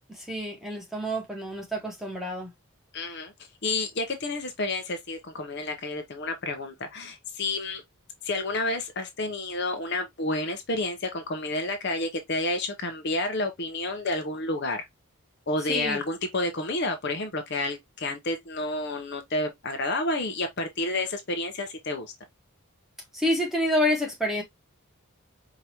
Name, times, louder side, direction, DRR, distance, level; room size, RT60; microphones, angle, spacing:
voice 1, 0.1-2.5 15.7-16.0 23.1-24.4, left 1 dB, ahead, 1.3 m, -28 dB
voice 2, 2.9-3.3 3.6-7.8 8.2-14.9 15.5-22.1, left 2 dB, 50° left, 0.8 m, -30 dB
4.9 x 2.8 x 2.9 m
head